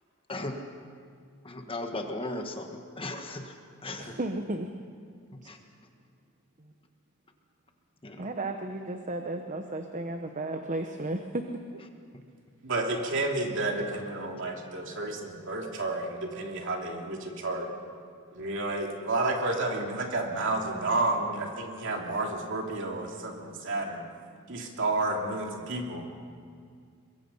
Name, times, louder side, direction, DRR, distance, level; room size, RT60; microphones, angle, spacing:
voice 1, 0.3-0.6 1.4-3.6 3.8-4.1 5.3-5.6 8.0-8.3 12.1-12.2 14.9-15.0 21.8-21.9, left 2 dB, 25° left, 4 dB, 1.5 m, -37 dB
voice 2, 4.0-4.7 6.6-6.7 8.2-11.8, right 2 dB, 35° right, 5 dB, 1.0 m, -34 dB
voice 3, 12.6-17.7 18.3-24.1 24.5-26.1, right 2 dB, 60° right, 1 dB, 2.9 m, -31 dB
23.0 x 22.0 x 5.6 m, 2.3 s
head